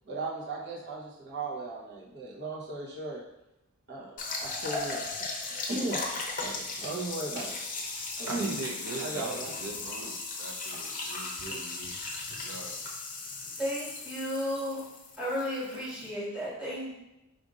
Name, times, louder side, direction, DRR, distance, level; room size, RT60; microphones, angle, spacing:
voice 1, 0.0-3.2 3.9-5.4 5.7-8.5 9.0-9.5 10.7-10.8 11.5-11.6, right 2 dB, 50° right, -5 dB, 0.9 m, -37 dB
sound 1, 4.2-16.1, left 3 dB, 35° left, 0.7 m, -37 dB
voice 2, 8.3-12.0 12.3-12.8, right 2 dB, 80° right, 2 dB, 0.6 m, -40 dB
voice 3, 13.6-14.9 15.2-16.9, equal, 5° right, -8 dB, 1.4 m, -33 dB
5.1 x 2.6 x 3.7 m, 0.90 s
head